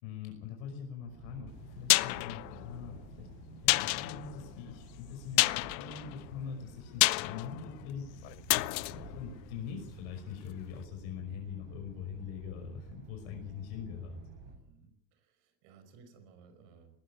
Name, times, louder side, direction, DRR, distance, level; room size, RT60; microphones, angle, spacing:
voice 1, 0.0-3.3 3.5-14.2, left 7 dB, 60° left, 3 dB, 5.6 m, -43 dB
sound 1, 1.0-14.6, right 5 dB, 35° right, 7.7 m, -52 dB
sound 2, 1.5-10.3 10.6-10.7, left 22 dB, 90° left, 0.8 m, -31 dB
voice 2, 14.4-17.0, right 5 dB, 60° right, 10 dB, 5.3 m, -59 dB
19.5 x 15.0 x 9.8 m, 0.76 s
cardioid pair, 165°, 50 cm